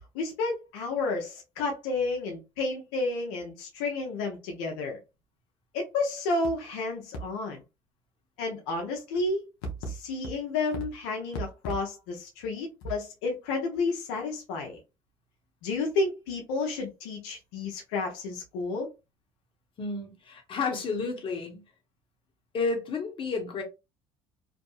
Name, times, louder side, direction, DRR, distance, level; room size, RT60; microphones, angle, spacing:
voice 1, 0.1-5.0 5.7-7.6 8.4-9.4 9.8-14.8 15.6-18.9, left 3 dB, 85° left, 0.7 m, -31 dB
voice 2, 19.8-21.6 22.5-23.6, left 4 dB, 45° left, 1.1 m, -31 dB
2.7 x 2.5 x 2.3 m
supercardioid pair, 80°, 12 cm